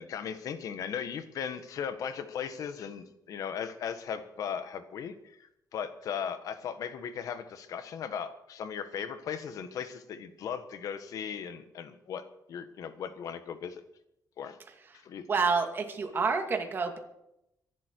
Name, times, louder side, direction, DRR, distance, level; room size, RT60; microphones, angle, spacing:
voice 1, 0.0-12.2 12.5-13.8 14.4-14.6 14.9-15.2, left 7 dB, 65° left, 10 dB, 1.5 m, -37 dB
voice 2, 15.3-17.0, right 5 dB, 35° right, 4 dB, 2.2 m, -28 dB
24.5 x 11.5 x 4.7 m, 0.83 s
cardioid pair, 150°, 6 cm